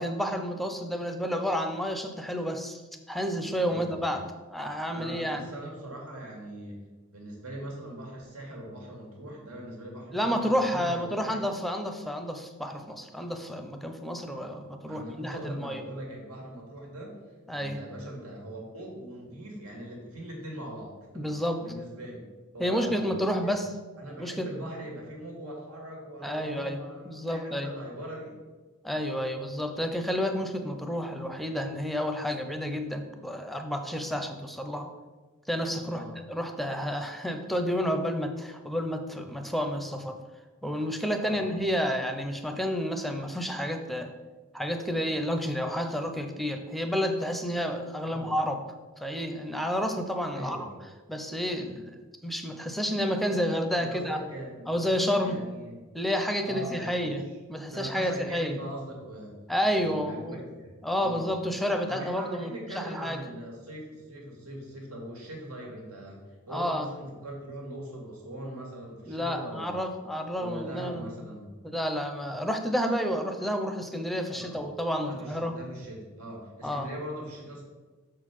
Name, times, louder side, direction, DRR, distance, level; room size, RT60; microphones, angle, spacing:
voice 1, 0.0-2.8 3.1-4.2 4.5-5.5 10.1-15.8 17.5-17.8 21.1-21.6 22.6-23.8 24.2-24.5 26.2-26.8 27.0-27.7 28.8-34.9 35.5-40.2 40.6-44.1 44.5-48.6 49.0-50.7 51.1-54.2 54.7-55.4 55.9-57.2 57.5-58.6 59.5-60.3 60.8-63.2 66.5-66.9 69.1-71.1 71.6-75.5 76.6-76.9, equal, ahead, 6 dB, 0.6 m, -30 dB
voice 2, 3.6-4.2 4.9-6.8 7.1-11.4 14.8-17.2 17.5-21.3 21.6-22.2 22.5-23.1 23.4-23.5 24.0-28.4 35.8-36.2 41.2-41.5 48.0-48.3 50.3-50.8 53.8-55.7 56.4-57.1 57.7-59.4 59.6-61.3 61.9-69.7 70.3-71.5 74.4-74.6 75.0-77.6, right 1 dB, 85° right, -1 dB, 2.1 m, -41 dB
6.3 x 4.6 x 6.0 m, 1.3 s
head